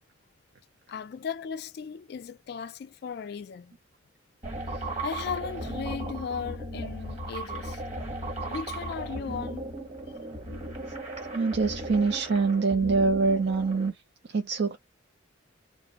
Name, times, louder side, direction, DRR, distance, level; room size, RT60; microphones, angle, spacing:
voice 1, 0.9-3.8 5.0-7.8 8.5-9.6, left 6 dB, 55° left, 0.3 m, -36 dB
sound 1, 4.4-13.9, right 1 dB, 30° right, 1.2 m, -36 dB
voice 2, 11.3-13.9 14.3-14.8, right 4 dB, 55° right, 0.5 m, -25 dB
2.5 x 2.1 x 2.9 m
head